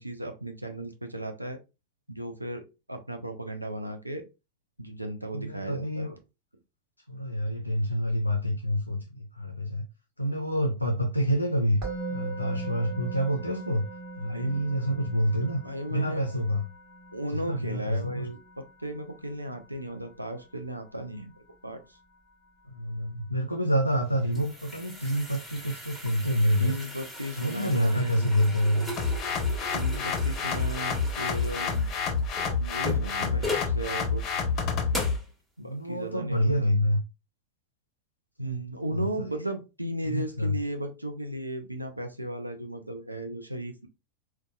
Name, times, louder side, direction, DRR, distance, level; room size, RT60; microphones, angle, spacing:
voice 1, 0.0-1.6 2.1-4.2 4.8-6.1 14.3-14.6 15.4-16.2 17.1-22.0 26.6-28.3 29.7-31.9 32.6-34.2 35.6-36.7 38.4-43.9, right 1 dB, 85° right, 0.4 m, -36 dB
voice 2, 5.3-6.2 7.1-9.8 10.2-11.8 12.1-13.9 14.2-15.6 15.9-16.6 17.3-18.3 22.7-26.8 27.4-28.9 35.6-37.0 38.4-38.6 38.9-39.4 40.0-40.6, equal, 90° left, 0.4 m, -27 dB
Musical instrument, 11.8-22.9, right 3 dB, 40° right, 1.2 m, -42 dB
sound 1, 23.9-33.8 34.3-34.4 34.9-35.3, left 2 dB, 5° right, 1.1 m, -38 dB
sound 2, 29.0-35.2, left 5 dB, 35° left, 0.6 m, -28 dB
3.9 x 2.2 x 2.3 m
figure-of-eight pair, 90°, 0 cm